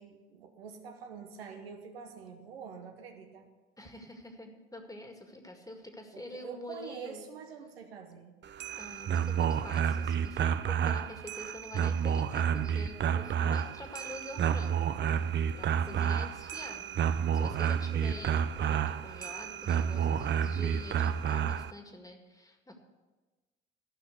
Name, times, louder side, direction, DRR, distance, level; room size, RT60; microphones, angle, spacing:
voice 1, 0.0-3.5 6.1-8.4 15.9-16.2, right 6 dB, 85° right, 4 dB, 1.1 m, -46 dB
voice 2, 3.8-7.2 8.8-15.2 15.5-16.9 17.3-22.8, left 1 dB, 10° left, 4 dB, 1.9 m, -46 dB
sound 1, 8.4-21.7, right 8 dB, 40° right, 0.6 m, -30 dB
13.5 x 5.7 x 8.1 m, 1.2 s
hypercardioid pair, 60°, 29 cm